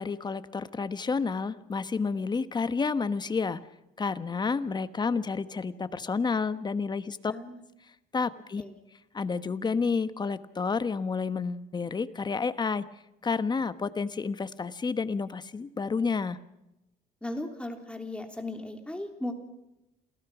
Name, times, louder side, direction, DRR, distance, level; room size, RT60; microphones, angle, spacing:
voice 1, 0.0-3.6 4.0-7.3 8.1-8.6 9.1-12.9 13.2-16.4, left 5 dB, 25° left, 13 dB, 1.2 m, -30 dB
voice 2, 7.3-7.6 8.6-8.7 17.2-19.3, left 1 dB, 5° left, 4 dB, 3.2 m, -37 dB
28.0 x 17.5 x 6.1 m, 0.92 s
cardioid pair, 110°, 17 cm